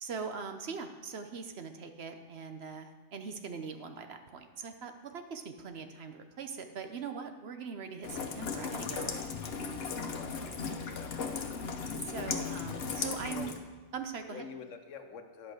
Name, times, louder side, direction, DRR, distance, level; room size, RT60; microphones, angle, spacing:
voice 1, 0.0-9.3 10.6-10.8 12.0-13.5 13.9-14.5, right 5 dB, 60° right, 7 dB, 1.0 m, -41 dB
Rain, 8.0-13.6, left 5 dB, 55° left, 1.0 m, -36 dB
voice 2, 10.0-11.6 13.3-13.5 14.3-15.5, left 6 dB, 80° left, 7 dB, 1.2 m, -47 dB
10.5 x 5.6 x 6.6 m, 1.3 s
omnidirectional pair, 1.3 m